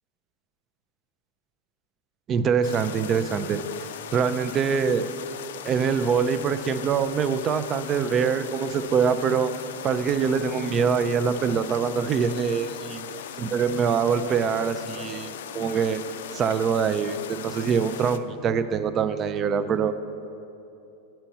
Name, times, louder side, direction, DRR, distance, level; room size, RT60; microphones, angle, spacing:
voice 1, 2.3-3.6 4.1-5.1 5.6-9.5 9.8-13.0 13.4-16.0 16.3-19.9, right 6 dB, 35° right, 12 dB, 0.4 m, -24 dB
sound 1, 2.6-18.2, left 9 dB, 70° left, 0.3 m, -38 dB
8.8 x 4.5 x 5.4 m, 2.8 s
hypercardioid pair, 95°, 0 cm